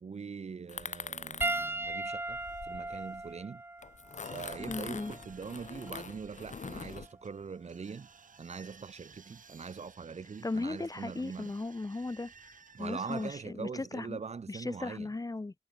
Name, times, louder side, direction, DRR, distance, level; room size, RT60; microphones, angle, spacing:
voice 1, 0.0-3.6 4.2-8.1 8.4-11.5 12.7-15.1, right 5 dB, 55° right, 0.6 m, -42 dB
sound 1, 0.7-3.3 3.8-7.1, left 5 dB, 65° left, 1.0 m, -44 dB
Piano, 1.4-6.1 7.0-7.2 9.1-9.2, right 2 dB, 15° right, 0.7 m, -38 dB
sound 2, 4.2-13.4, right 5 dB, 80° right, 3.1 m, -57 dB
voice 2, 4.7-5.1 10.4-14.2 14.5-15.5, left 2 dB, 25° left, 0.8 m, -37 dB
wide cardioid pair, 95°, 13 cm